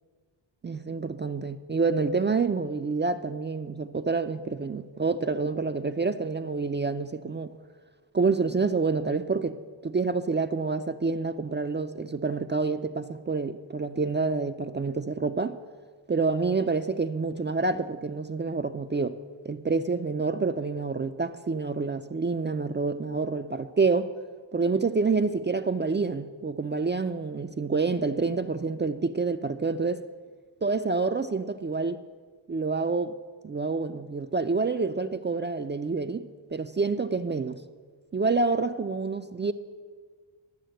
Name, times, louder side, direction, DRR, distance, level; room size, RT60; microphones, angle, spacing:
voice 1, 0.6-7.5 8.1-15.6 16.1-19.2 19.4-24.1 24.5-30.0 30.6-32.0 32.5-33.1 33.4-37.6 38.1-39.5, right 4 dB, 25° right, 0.4 m, -28 dB
12.0 x 7.3 x 7.8 m
cardioid pair, 75°, 48 cm